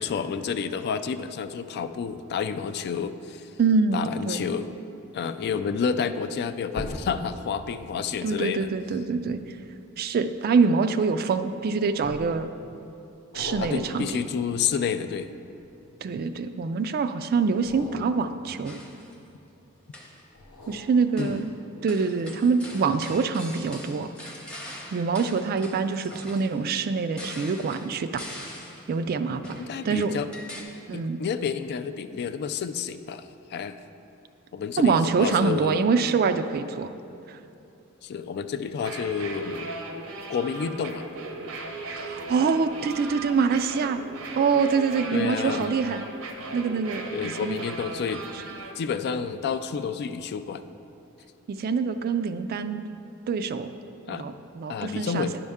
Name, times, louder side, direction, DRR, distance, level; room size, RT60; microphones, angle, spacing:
voice 1, 0.0-3.5 3.9-4.7 5.1-8.7 13.6-15.3 21.2-21.4 29.6-30.3 30.9-33.8 34.5-35.8 38.0-39.7 40.3-41.0 45.1-45.7 47.1-48.3 48.8-50.6 54.1-54.2 54.7-55.3, left 6 dB, 50° left, 10 dB, 0.3 m, -30 dB
voice 2, 3.6-4.4 8.2-9.4 10.0-12.5 13.3-14.2 16.0-18.8 20.7-21.5 21.8-24.1 24.9-28.2 28.9-29.6 29.8-30.1 30.9-31.2 34.8-36.9 37.3-37.4 41.9-44.0 44.3-46.0 46.5-47.0 47.4-47.6 51.5-52.9 53.3-53.7 54.1-55.3, right 5 dB, 45° right, 10 dB, 0.3 m, -25 dB
sound 1, 6.7-11.3 12.0-12.6 13.3-16.3 17.5-19.6 20.3-21.8 22.2-22.3, left 1 dB, 85° left, 1.1 m, -43 dB
sound 2, 18.6-19.1 19.8-20.3 21.2-21.5 21.9-28.9 29.4-30.6, left 1 dB, 5° left, 0.7 m, -43 dB
sound 3, 38.7-48.7, right 2 dB, 85° right, 0.7 m, -37 dB
10.5 x 5.4 x 3.5 m, 2.8 s
head